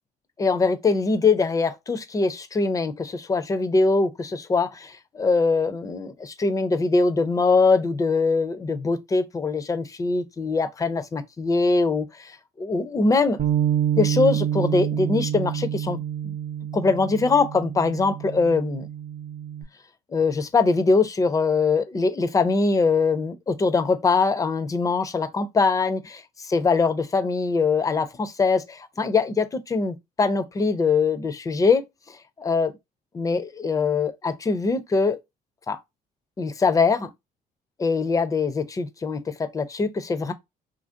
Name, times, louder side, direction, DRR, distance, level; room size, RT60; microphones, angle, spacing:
voice 1, 0.4-12.3 12.6-13.4 13.9-16.0 16.7-18.9 20.1-31.8 32.4-32.7 33.1-35.2 35.7-35.8 36.4-37.1 37.8-40.3, left 4 dB, 20° left, 0.4 m, -22 dB
Bass guitar, 13.4-19.6, right 10 dB, 45° right, 0.6 m, -27 dB
2.9 x 2.5 x 2.5 m
cardioid pair, 110°, 17 cm